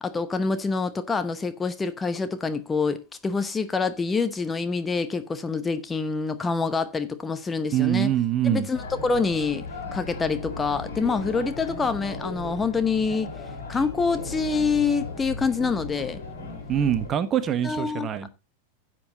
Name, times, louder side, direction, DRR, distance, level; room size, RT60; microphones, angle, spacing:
voice 1, 0.0-8.1 8.4-9.6 9.9-13.3 13.7-16.2 17.6-18.1, left 4 dB, 15° left, 0.8 m, -26 dB
voice 2, 7.7-8.7 16.7-18.3, right 10 dB, 25° right, 1.1 m, -24 dB
sound 1, 8.7-17.1, left 3 dB, 65° left, 5.4 m, -36 dB
10.5 x 7.8 x 4.0 m
figure-of-eight pair, 90°, 0 cm